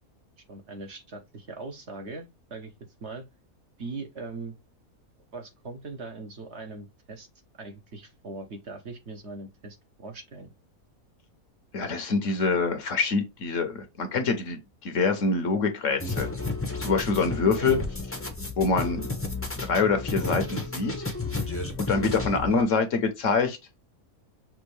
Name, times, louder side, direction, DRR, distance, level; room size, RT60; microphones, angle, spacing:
voice 1, 0.5-2.7 3.0-3.2 3.8-4.5 5.3-7.3 7.6-10.5 17.4-17.7, right 3 dB, 50° right, 1.1 m, -40 dB
voice 2, 11.7-16.3 16.8-17.8 18.6-19.1 19.6-21.1 21.8-23.6, left 4 dB, 60° left, 1.1 m, -25 dB
sound 1, 16.0-22.6, left 3 dB, 15° left, 0.6 m, -32 dB
6.1 x 2.5 x 3.2 m
omnidirectional pair, 1.6 m